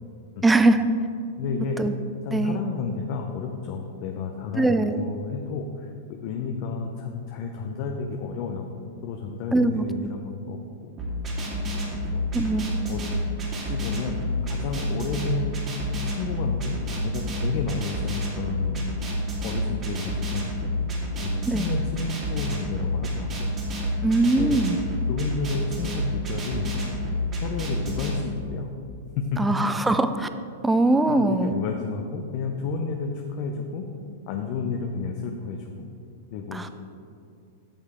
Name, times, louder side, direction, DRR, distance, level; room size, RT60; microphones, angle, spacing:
voice 1, 0.4-0.9 1.8-2.0 2.3-2.6 4.5-5.1 9.5-10.1 12.3-12.9 21.5-21.7 24.0-24.8 29.4-30.3 30.6-31.5 36.5-36.7, right 2 dB, 10° right, 10 dB, 0.4 m, -22 dB
voice 2, 1.4-1.8 2.2-8.7 9.0-10.9 12.1-12.2 12.8-13.0 13.6-14.2 14.5-15.6 16.0-19.2 19.4-20.7 21.2-23.5 24.4-24.6 25.1-26.7 27.0-27.1 27.4-28.7 29.2-29.4 31.1-33.8 34.3-35.9 36.3-36.7, left 5 dB, 50° left, 3 dB, 0.6 m, -31 dB
sound 1, 11.0-28.1, left 1 dB, 30° right, 2.0 m, -29 dB
8.8 x 6.6 x 3.6 m, 2.4 s
hypercardioid pair, 110°, 0 cm